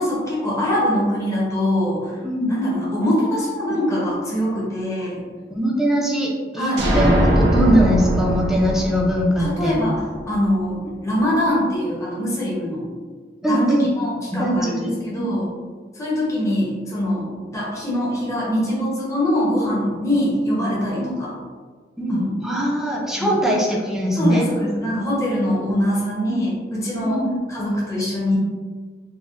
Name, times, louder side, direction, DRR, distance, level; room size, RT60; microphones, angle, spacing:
voice 1, 0.0-2.2 2.5-5.2 6.6-6.9 9.4-12.8 13.4-13.7 14.0-15.5 15.9-21.3 22.1-22.3 23.2-23.3 24.2-28.4, left 1 dB, 15° left, -6 dB, 0.8 m, -23 dB
voice 2, 2.2-2.6 3.6-3.8 5.5-9.7 13.4-13.9 14.3-15.4 21.0-21.1 22.0-24.4 25.4-25.5 26.3-26.4 27.0-27.3, equal, 5° right, -3 dB, 0.5 m, -21 dB
sound 1, 6.8-10.5, equal, 65° right, 0.6 m, -20 dB
4.0 x 2.1 x 2.4 m, 1.5 s
head